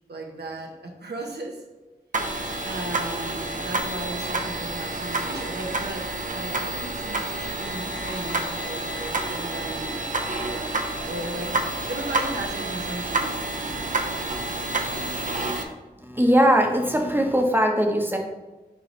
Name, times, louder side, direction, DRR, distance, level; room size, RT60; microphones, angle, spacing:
voice 1, 0.1-1.7 2.6-13.8, right 2 dB, 75° right, 1 dB, 0.9 m, -36 dB
sound 1, 2.1-15.6, right 2 dB, 50° right, 0.7 m, -29 dB
voice 2, 14.2-15.4 16.0-18.2, equal, 10° right, 2 dB, 1.0 m, -22 dB
6.8 x 3.2 x 5.2 m, 1.1 s
wide cardioid pair, 70°, 17 cm